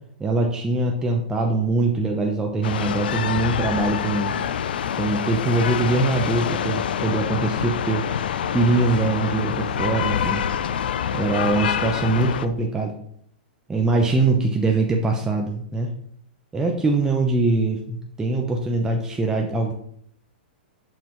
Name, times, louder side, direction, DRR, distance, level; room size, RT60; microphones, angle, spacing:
voice 1, 0.2-4.4 5.0-8.1 8.5-10.4 11.1-12.9 13.7-15.9 16.5-19.7, right 2 dB, 10° right, 1 dB, 0.8 m, -22 dB
sound 1, 2.6-12.5, left 8 dB, 70° left, 0.4 m, -26 dB
6.8 x 5.8 x 3.1 m, 0.64 s
hypercardioid pair, 115°, 5 cm